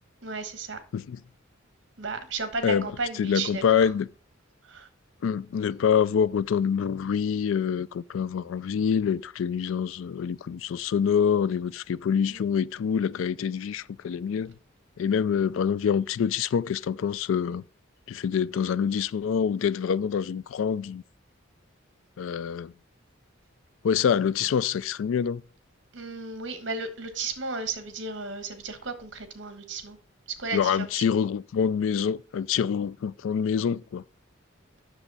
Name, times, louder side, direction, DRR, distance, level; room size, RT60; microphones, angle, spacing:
voice 1, 0.2-0.8 2.0-3.9 4.6-4.9 12.3-12.4 25.9-30.0 30.3-31.1, right 4 dB, 60° right, 1.3 m, -34 dB
voice 2, 3.2-4.1 5.2-14.5 15.0-17.6 18.1-21.0 22.2-22.7 23.8-25.4 30.5-34.0, left 7 dB, 75° left, 0.3 m, -26 dB
8.0 x 6.5 x 4.1 m
head